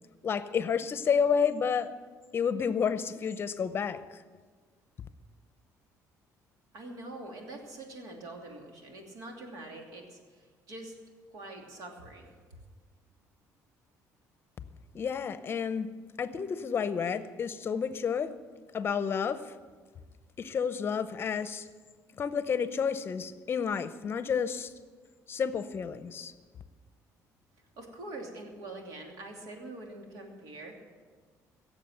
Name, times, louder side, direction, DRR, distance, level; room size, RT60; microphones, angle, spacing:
voice 1, 0.2-1.9 2.3-4.2 14.9-15.9 16.2-18.3 18.7-19.6 20.4-21.7 22.2-24.7 25.3-26.3, left 6 dB, 35° left, 12 dB, 0.7 m, -30 dB
voice 2, 6.7-10.9 11.3-12.3 27.8-30.8, right 2 dB, 70° right, 1 dB, 2.9 m, -44 dB
16.5 x 7.4 x 7.9 m, 1.5 s
cardioid pair, 130°, 7 cm